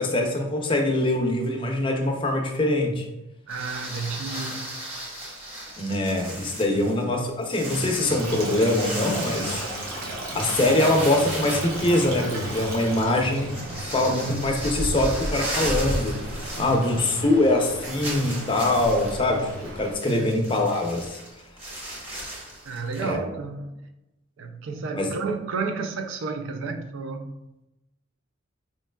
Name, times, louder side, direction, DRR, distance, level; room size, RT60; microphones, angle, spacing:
voice 1, 0.0-3.1 5.8-9.6 10.3-16.2 16.6-21.2 23.0-23.2 25.0-25.1, left 1 dB, 25° left, 0.5 m, -23 dB
sound 1, 3.5-17.3 17.5-17.6 18.0-23.1, right 1 dB, 30° right, 1.1 m, -36 dB
voice 2, 3.5-4.7 16.5-16.8 20.1-20.3 22.7-23.9 24.4-27.4, right 4 dB, 65° right, 0.3 m, -31 dB
sound 2, 7.6-19.6, right 1 dB, 45° right, 0.9 m, -39 dB
Stream, 8.2-19.9, right 1 dB, 85° right, 0.8 m, -34 dB
4.4 x 3.1 x 2.2 m
head